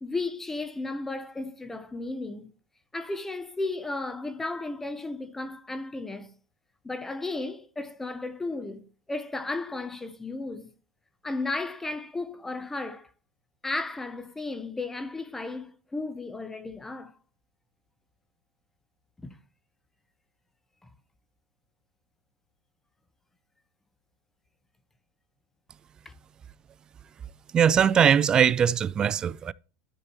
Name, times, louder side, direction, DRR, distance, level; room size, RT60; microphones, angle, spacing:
voice 1, 0.0-2.5 2.9-6.3 6.8-10.7 11.2-13.1 13.6-17.1 19.2-19.4 26.0-26.1, left 2 dB, 10° left, 0.6 m, -34 dB
voice 2, 27.5-29.5, right 8 dB, 25° right, 0.3 m, -21 dB
12.5 x 4.7 x 3.0 m
supercardioid pair, 120°, 3 cm